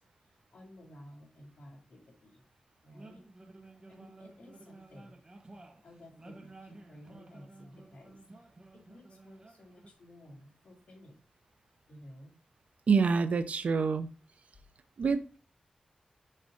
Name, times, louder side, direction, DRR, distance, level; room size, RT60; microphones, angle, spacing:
voice 1, 0.2-2.4 2.8-3.3 3.9-11.3 11.9-12.4 14.5-14.6, equal, 65° left, 2.6 m, -55 dB
sound 1, 2.9-9.9, right 2 dB, 30° right, 1.1 m, -54 dB
voice 2, 12.9-14.1 15.0-15.4, right 5 dB, 70° right, 0.5 m, -27 dB
6.5 x 5.2 x 4.9 m
wide cardioid pair, 115°, 2 cm